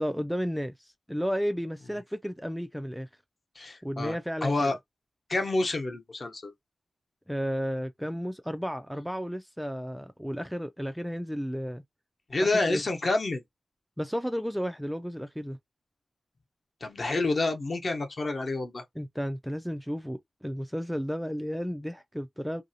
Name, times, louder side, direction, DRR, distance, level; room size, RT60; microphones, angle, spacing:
voice 1, 0.0-3.1 3.8-4.8 7.3-11.8 12.4-12.8 14.0-15.6 19.0-22.6, equal, ahead, 0.3 m, -33 dB
voice 2, 3.6-4.1 4.4-4.8 5.3-6.5 12.3-13.4 16.8-18.8, left 2 dB, 45° left, 0.9 m, -28 dB
2.8 x 2.7 x 2.7 m
wide cardioid pair, 115°, 0 cm